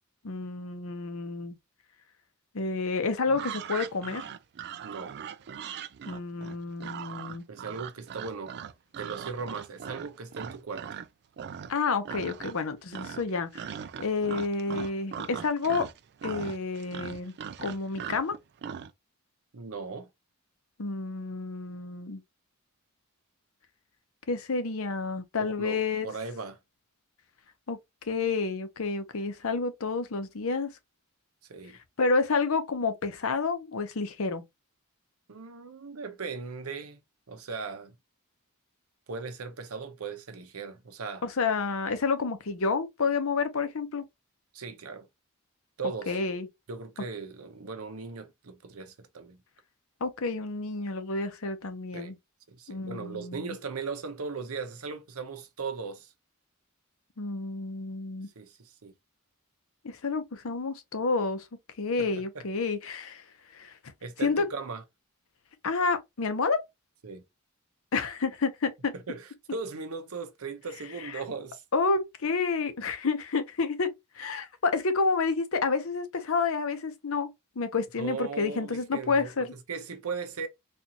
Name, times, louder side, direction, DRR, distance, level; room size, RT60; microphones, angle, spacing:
voice 1, 0.2-1.6 2.5-4.3 6.1-7.4 11.7-13.7 14.0-15.9 16.2-17.3 17.6-18.4 20.8-22.2 24.3-26.1 27.7-27.8 28.0-30.7 32.0-34.4 41.2-44.0 46.1-46.5 50.0-52.2 52.7-53.6 57.2-58.3 59.8-61.5 61.8-63.2 63.5-63.7 64.2-64.5 65.6-66.6 67.9-68.9 71.0-71.2 71.7-73.9 74.1-77.3 77.6-79.5, left 4 dB, 70° left, 0.7 m, -29 dB
sound 1, 3.3-11.1 11.4-11.8 12.0-12.7 12.9-18.9, right 8 dB, 50° right, 0.3 m, -40 dB
voice 2, 4.8-5.2 7.5-8.6 9.0-10.9 19.5-20.1 25.4-26.6 31.5-31.8 35.3-37.0 37.3-37.9 39.1-41.2 44.5-45.1 45.8-46.2 46.7-49.4 51.9-52.1 52.5-56.1 58.4-58.9 62.0-62.4 64.0-64.8 67.0-67.2 68.9-71.6 78.0-79.3 79.7-80.5, right 5 dB, 75° right, 0.8 m, -38 dB
4.3 x 2.5 x 2.8 m
head